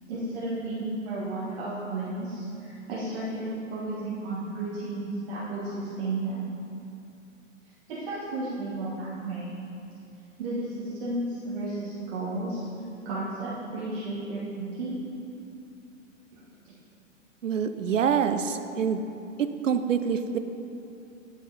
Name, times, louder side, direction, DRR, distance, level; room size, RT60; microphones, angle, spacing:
voice 1, 0.1-6.5 7.9-9.6 10.4-12.6 13.0-15.0 16.3-16.7, right 2 dB, 45° right, -8 dB, 1.5 m, -33 dB
voice 2, 17.4-19.0 19.4-20.4, right 7 dB, 70° right, 9 dB, 0.6 m, -26 dB
10.5 x 4.9 x 3.9 m, 2.8 s
figure-of-eight pair, 110°, 39 cm